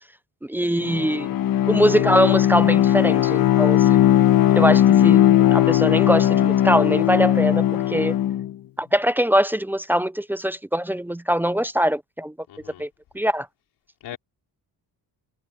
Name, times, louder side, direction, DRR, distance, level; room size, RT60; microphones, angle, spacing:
voice 1, 0.4-1.3 1.7-4.0 4.6-8.1 8.8-12.3 12.8-12.9 13.1-13.5, equal, 5° right, 0.3 m, -22 dB
Bowed string instrument, 0.8-8.5, left 12 dB, 60° left, 1.2 m, -18 dB
voice 2, 12.5-12.9 14.0-14.2, left 12 dB, 85° left, 4.1 m, -41 dB
cardioid pair, 155°, 39 cm